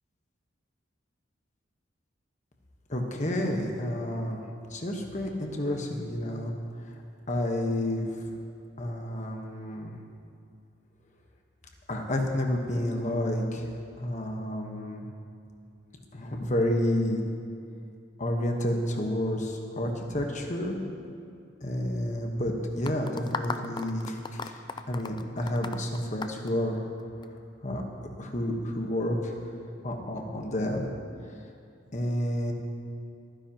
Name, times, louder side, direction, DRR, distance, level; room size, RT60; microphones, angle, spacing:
voice 1, 2.9-4.4 4.7-6.5 6.8-6.9 7.3-8.3 8.8-9.9 11.9-13.7 14.0-15.1 16.1-17.2 18.2-20.8 21.6-26.8 27.6-27.8 28.2-29.3 29.8-30.8 31.9-32.5, left 1 dB, 40° left, 2 dB, 1.3 m, -30 dB
sound 1, 22.9-27.3, left 4 dB, 25° left, 0.4 m, -37 dB
23.5 x 10.0 x 3.0 m, 2.4 s
head